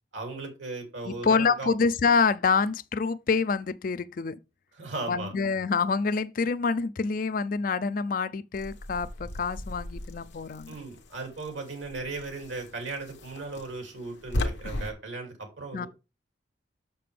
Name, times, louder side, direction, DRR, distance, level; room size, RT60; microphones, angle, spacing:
voice 1, 0.1-1.7 4.7-5.3 10.7-15.9, right 3 dB, 85° right, 2.7 m, -37 dB
voice 2, 1.0-4.3 5.1-10.7 15.7-15.9, left 5 dB, 45° left, 0.4 m, -26 dB
sound 1, 8.5-14.9, left 1 dB, 70° left, 1.0 m, -37 dB
6.8 x 6.7 x 3.4 m
head